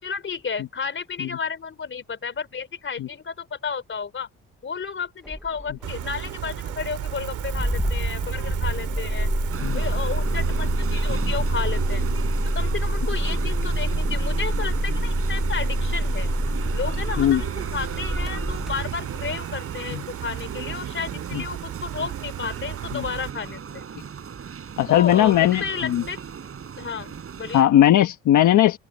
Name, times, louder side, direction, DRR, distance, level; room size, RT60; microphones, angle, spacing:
voice 1, 0.0-4.3 4.6-9.3 9.7-12.0 12.5-16.3 16.7-23.8 24.9-26.2 26.8-27.7, left 6 dB, 40° left, 3.9 m, -32 dB
Engine starting, 5.3-19.4, equal, ahead, 0.9 m, -27 dB
Gull seagull, 5.8-23.3, right 12 dB, 80° right, 2.8 m, -33 dB
sound 1, 9.5-27.6, right 7 dB, 50° right, 5.6 m, -37 dB
voice 2, 24.8-26.0 27.5-28.8, left 12 dB, 75° left, 1.4 m, -18 dB
cardioid pair, 90°, 30 cm